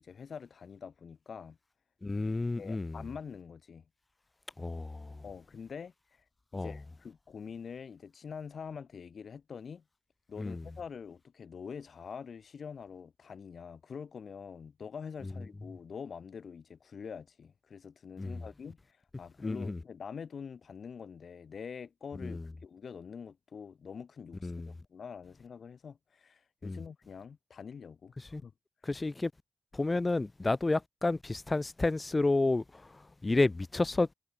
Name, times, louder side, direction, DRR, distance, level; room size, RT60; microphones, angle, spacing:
voice 1, 0.0-1.6 2.6-3.8 5.2-6.2 6.5-9.8 10.3-28.5, left 6 dB, 75° left, 3.9 m, -45 dB
voice 2, 2.0-3.0 4.6-5.2 6.5-6.8 10.4-10.7 18.2-18.4 19.4-19.8 22.2-22.4 24.4-24.7 26.6-26.8 28.2-28.4 28.8-29.3 29.7-34.1, left 2 dB, 30° left, 1.0 m, -31 dB
cardioid pair, 65°, 0 cm